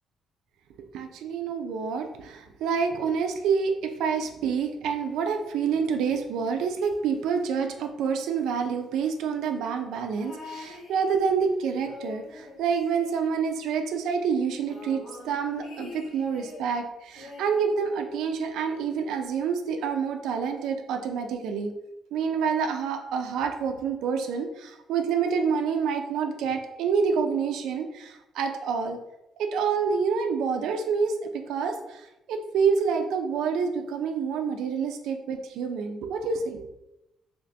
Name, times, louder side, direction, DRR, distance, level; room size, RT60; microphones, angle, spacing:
voice 1, 0.9-21.7 22.1-29.0 29.4-32.0 32.3-36.6, right 6 dB, 85° right, 5 dB, 0.3 m, -27 dB
sound 1, 10.2-11.5 11.8-13.7 14.0-14.1 14.3-16.7 17.2-18.4 19.3-19.4, left 3 dB, 65° left, 1.1 m, -45 dB
2.8 x 2.6 x 3.3 m, 0.90 s
cardioid pair, 90°, 0 cm